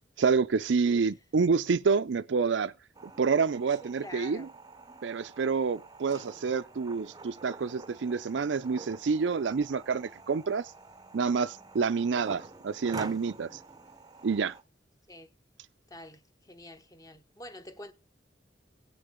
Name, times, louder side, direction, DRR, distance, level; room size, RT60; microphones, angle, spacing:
voice 1, 0.2-2.7 3.2-4.5 5.0-10.7 11.1-13.6 14.2-14.5, right 5 dB, 85° right, 0.5 m, -28 dB
sound 1, 2.9-14.6, right 3 dB, 20° right, 0.6 m, -47 dB
voice 2, 3.8-4.5 15.1-15.3 15.9-17.9, left 1 dB, 20° left, 0.9 m, -47 dB
17.0 x 6.6 x 3.6 m
head